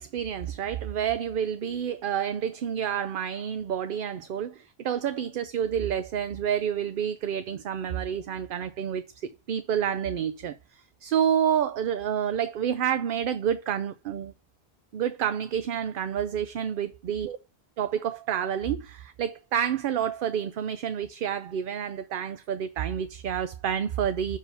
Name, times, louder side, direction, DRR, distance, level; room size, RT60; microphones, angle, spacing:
voice 1, 0.0-14.3 14.9-17.4 17.8-24.4, right 9 dB, 65° right, 0.7 m, -29 dB
6.8 x 4.8 x 5.4 m
omnidirectional pair, 1.0 m